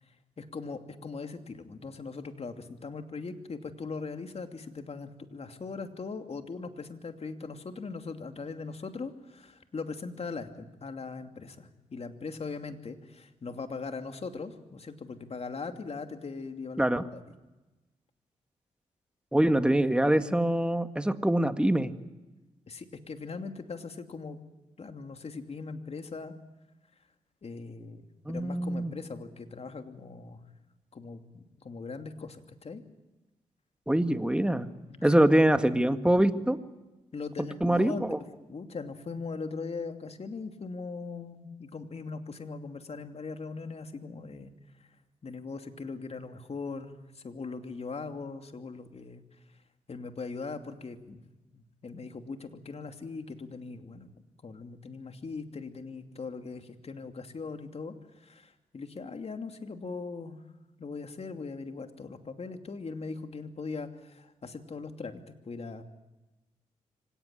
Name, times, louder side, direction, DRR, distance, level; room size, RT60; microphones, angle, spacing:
voice 1, 0.4-16.9 17.1-17.2 22.7-24.4 24.8-26.3 27.4-30.4 30.9-32.8 34.9-35.3 37.1-38.1 38.5-44.5 44.8-44.9 45.2-49.2 49.9-51.2 51.5-54.1 54.4-60.4 60.8-65.8, left 4 dB, 50° left, 7 dB, 2.7 m, -40 dB
voice 2, 19.3-21.9 28.3-28.9 33.9-34.7 35.0-36.6 37.6-38.2, right 1 dB, 5° right, 9 dB, 1.9 m, -24 dB
25.5 x 18.0 x 10.0 m, 1.1 s
cardioid pair, 60°, 13 cm